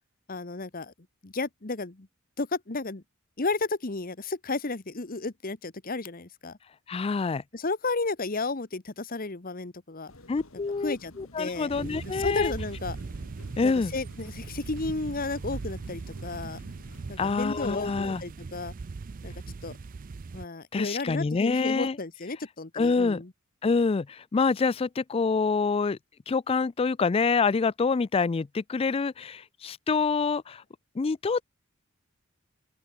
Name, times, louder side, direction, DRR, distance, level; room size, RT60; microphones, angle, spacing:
voice 1, 0.3-0.9 1.2-2.1 2.4-3.0 3.4-6.6 7.5-10.1 10.8-11.7 12.0-13.0 13.6-16.6 17.1-18.7 19.2-19.3 19.6-19.7 20.3-23.3, left 3 dB, 40° left, 1.2 m, -33 dB
voice 2, 6.9-7.4 10.3-12.5 13.6-13.9 17.2-18.2 20.7-22.0 22.7-23.2 23.6-26.0 26.3-30.6 31.0-31.4, left 4 dB, 25° left, 0.3 m, -26 dB
sound 1, 10.1-17.5, left 1 dB, 70° left, 3.9 m, -52 dB
sound 2, 11.7-20.4, right 4 dB, 40° right, 0.4 m, -39 dB
open air
head